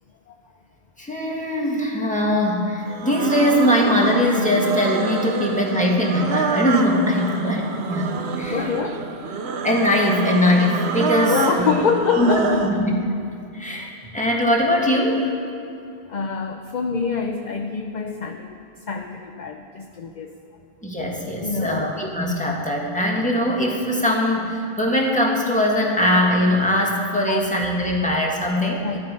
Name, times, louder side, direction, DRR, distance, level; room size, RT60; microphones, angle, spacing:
voice 1, 1.0-8.7 9.6-11.7 12.2-13.0 13.5-15.3 20.8-28.9, left 1 dB, 5° left, -2 dB, 1.8 m, -21 dB
sound 1, 2.9-12.8, right 5 dB, 80° right, 1.1 m, -27 dB
voice 2, 8.4-9.1 11.3-12.9 13.7-13.9 16.1-20.4 21.4-21.9 27.3-27.5 28.8-29.0, left 5 dB, 50° left, 4 dB, 0.7 m, -26 dB
13.5 x 12.0 x 5.4 m, 2.6 s
omnidirectional pair, 1.1 m